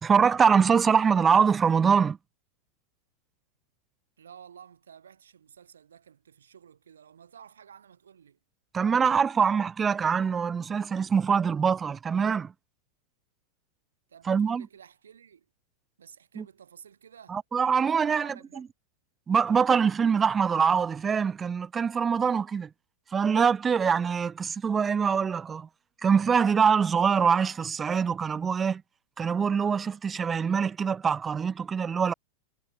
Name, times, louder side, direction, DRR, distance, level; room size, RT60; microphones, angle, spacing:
voice 1, 0.0-2.2 8.7-12.5 14.3-14.7 16.4-16.5 17.3-18.3 19.3-22.7 23.1-25.7 26.0-28.8 29.2-32.1, right 6 dB, 20° right, 0.4 m, -24 dB
voice 2, 4.2-8.4 14.1-15.5 16.0-17.4 18.1-18.7, right 8 dB, 85° right, 1.9 m, -52 dB
hypercardioid pair, 105°, 0 cm